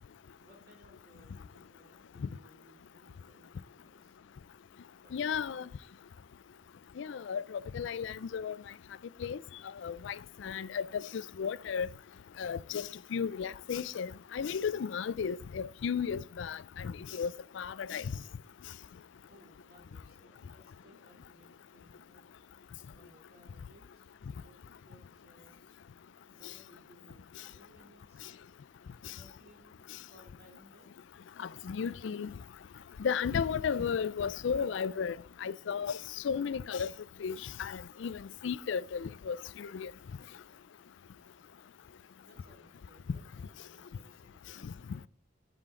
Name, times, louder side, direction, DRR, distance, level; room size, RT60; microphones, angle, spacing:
voice 1, 0.4-4.2 5.0-5.7 19.3-22.3 22.9-25.6 26.3-28.3 29.1-30.9 42.2-45.1, equal, 55° right, 2.9 m, -62 dB
voice 2, 5.1-5.7 7.0-8.6 9.2-9.4 9.8-11.9 12.4-18.1 31.4-32.3 33.0-36.0 36.2-36.9 37.2-39.9 44.6-44.7, left 6 dB, 65° left, 0.4 m, -34 dB
8.9 x 7.6 x 3.7 m
head